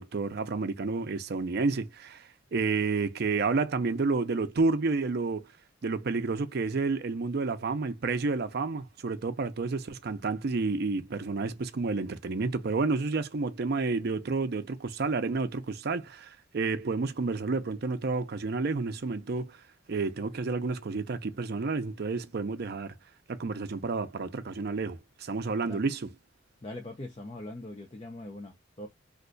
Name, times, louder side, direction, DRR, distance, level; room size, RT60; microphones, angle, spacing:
voice 1, 0.0-5.5 5.8-19.6 19.9-22.9 23.3-26.1, right 4 dB, 55° right, 0.5 m, -30 dB
voice 2, 26.6-28.9, left 1 dB, 30° left, 0.5 m, -41 dB
2.5 x 2.3 x 3.8 m
head